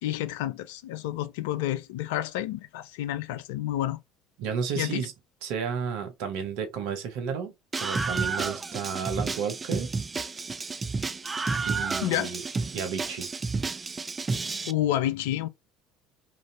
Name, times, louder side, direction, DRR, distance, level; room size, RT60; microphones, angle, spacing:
voice 1, 0.0-4.0 4.8-5.1 12.0-12.3 14.7-15.5, left 13 dB, 70° left, 0.3 m, -29 dB
voice 2, 4.4-5.1 5.4-7.5 7.8-9.9 11.6-12.4 12.7-13.3, right 6 dB, 65° right, 0.8 m, -32 dB
Screaming, 7.7-14.7, right 4 dB, 25° right, 0.3 m, -31 dB
3.0 x 2.5 x 2.5 m
hypercardioid pair, 65°, 0 cm